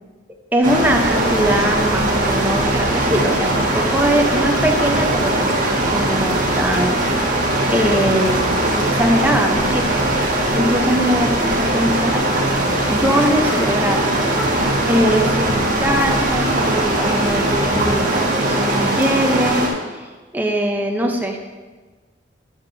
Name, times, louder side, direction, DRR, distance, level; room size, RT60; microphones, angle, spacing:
voice 1, 0.5-7.0 7.7-10.3 10.5-12.2 12.9-14.1 14.9-20.0 20.3-21.5, equal, 10° right, 2 dB, 0.7 m, -21 dB
sound 1, 0.6-19.7, right 1 dB, 45° right, 1.5 m, -20 dB
sound 2, 0.7-18.2, left 1 dB, 55° left, 1.9 m, -30 dB
sound 3, 6.7-7.1 7.8-8.6 8.9-9.5 9.8-9.9 10.1-10.6 11.0-11.1 11.4-11.9 12.4-13.9 14.1-14.2 14.6-14.7 14.9-15.0 16.1-17.5 18.2-19.7, equal, 40° left, 2.5 m, -39 dB
10.0 x 7.2 x 2.7 m, 1.3 s
head